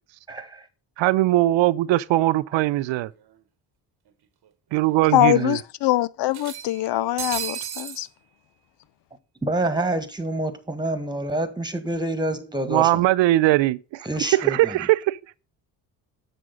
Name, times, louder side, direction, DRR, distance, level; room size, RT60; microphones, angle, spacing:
voice 1, 0.3-0.7 2.5-2.6 9.4-13.0 14.0-14.9, right 1 dB, 10° right, 1.6 m, -27 dB
voice 2, 1.0-3.1 4.7-5.6 12.7-14.1 14.5-15.2, right 16 dB, 70° right, 0.6 m, -20 dB
sound 1, 2.9-3.0 3.3-3.4 4.5-4.6 4.9-5.0 6.3-8.0, right 9 dB, 55° right, 1.1 m, -33 dB
voice 3, 5.1-8.1, left 15 dB, 65° left, 0.6 m, -22 dB
7.7 x 6.2 x 3.8 m
supercardioid pair, 55°, 46 cm